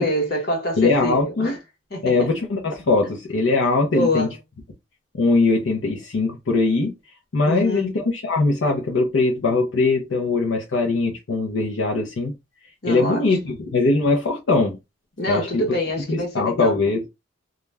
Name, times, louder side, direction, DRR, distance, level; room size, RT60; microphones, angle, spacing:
voice 1, 0.0-1.6 1.9-2.3 3.9-4.3 7.5-8.0 12.8-13.6 15.2-16.8, left 1 dB, 55° left, 1.0 m, -26 dB
voice 2, 0.8-1.5 2.0-4.3 5.1-6.9 7.3-12.3 12.8-14.8 15.3-15.6 16.1-17.0, left 3 dB, 75° left, 0.6 m, -21 dB
2.3 x 2.1 x 3.2 m
head